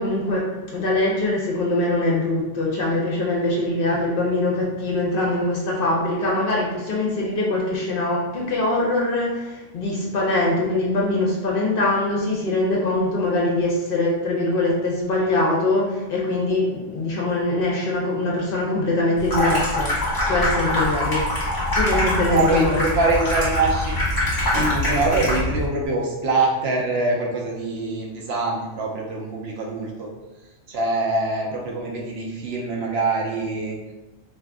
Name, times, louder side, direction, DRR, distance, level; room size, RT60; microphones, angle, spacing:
voice 1, 0.0-21.2 21.7-22.8 24.5-24.6, left 2 dB, 55° left, -3 dB, 0.7 m, -23 dB
Water tap faucet / Sink (filling or washing), 19.2-25.7, left 1 dB, 40° left, 1.0 m, -23 dB
voice 2, 22.3-23.9 24.5-30.1 30.7-33.8, right 2 dB, 65° right, -2 dB, 0.8 m, -24 dB
2.6 x 2.4 x 3.4 m, 1.0 s
omnidirectional pair, 1.2 m